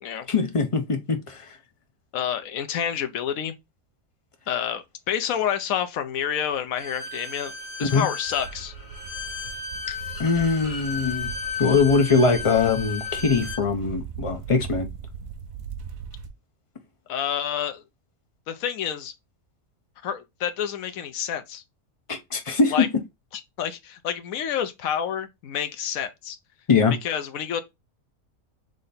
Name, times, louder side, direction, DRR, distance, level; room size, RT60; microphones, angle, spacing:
voice 1, 0.3-1.6 7.9-8.1 10.2-11.3 11.6-14.9 22.1-22.9 26.7-26.9, left 4 dB, 50° left, 0.4 m, -22 dB
voice 2, 2.1-3.5 4.5-7.5 7.8-8.7 9.9-10.0 17.1-17.8 18.5-19.1 20.0-21.6 22.7-22.9 23.3-26.4 27.0-27.6, left 9 dB, 75° left, 1.1 m, -28 dB
Bowed string instrument, 6.8-13.6, left 4 dB, 25° left, 1.0 m, -34 dB
sound 1, 8.3-16.3, right 6 dB, 70° right, 1.1 m, -39 dB
3.9 x 3.3 x 4.0 m
omnidirectional pair, 1.5 m